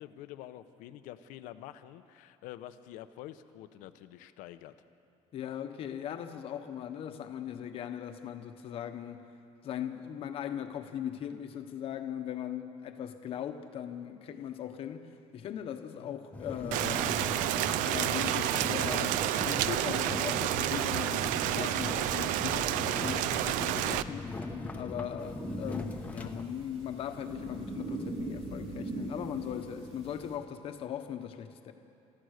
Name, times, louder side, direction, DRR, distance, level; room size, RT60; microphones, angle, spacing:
voice 1, 0.0-4.7, left 13 dB, 80° left, 11 dB, 0.9 m, -47 dB
voice 2, 5.3-9.2 9.6-17.1 17.8-24.3 24.7-31.7, left 9 dB, 45° left, 7 dB, 1.2 m, -39 dB
sound 1, 16.3-26.4, left 3 dB, 10° left, 1.1 m, -39 dB
Rain, 16.7-24.0, right 13 dB, 80° right, 0.6 m, -30 dB
sound 2, 25.2-30.4, right 2 dB, 45° right, 3.8 m, -41 dB
28.5 x 14.5 x 6.6 m, 2.6 s
cardioid pair, 160°, 13 cm